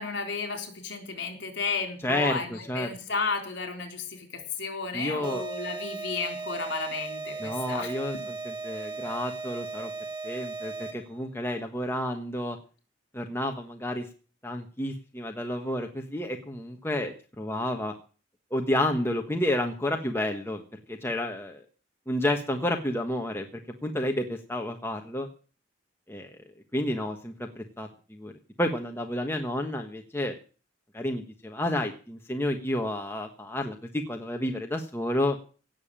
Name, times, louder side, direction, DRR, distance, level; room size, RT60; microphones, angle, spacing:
voice 1, 0.0-8.2, left 4 dB, 60° left, 5 dB, 3.9 m, -33 dB
voice 2, 2.0-2.9 4.9-5.4 7.4-9.9 10.2-12.6 13.1-14.1 14.4-17.9 18.5-20.6 20.9-21.6 22.1-23.5 23.8-25.3 26.1-26.3 26.7-28.3 28.6-30.3 30.9-35.4, left 1 dB, 10° left, 3 dB, 1.3 m, -30 dB
sound 1, 5.2-11.2, right 4 dB, 20° right, 3.0 m, -37 dB
17.5 x 7.2 x 8.8 m, 0.38 s
head